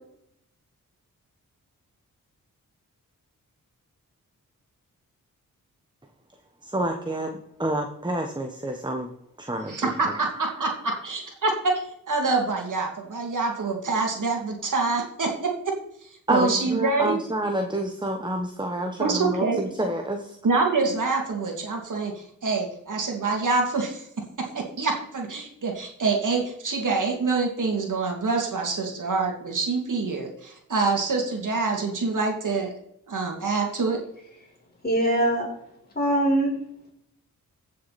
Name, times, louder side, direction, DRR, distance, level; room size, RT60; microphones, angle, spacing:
voice 1, 6.6-9.1 9.4-9.9 16.3-20.4, right 1 dB, 15° right, 4 dB, 1.2 m, -28 dB
voice 2, 9.7-15.3 16.3-17.2 19.0-19.6 20.4-24.0 24.5-32.7 33.1-34.0, right 3 dB, 65° right, 1 dB, 2.6 m, -26 dB
voice 3, 34.8-35.5 35.9-36.5, right 1 dB, 30° left, -1 dB, 4.9 m, -22 dB
15.5 x 6.6 x 4.3 m, 0.74 s
cardioid pair, 75°, 34 cm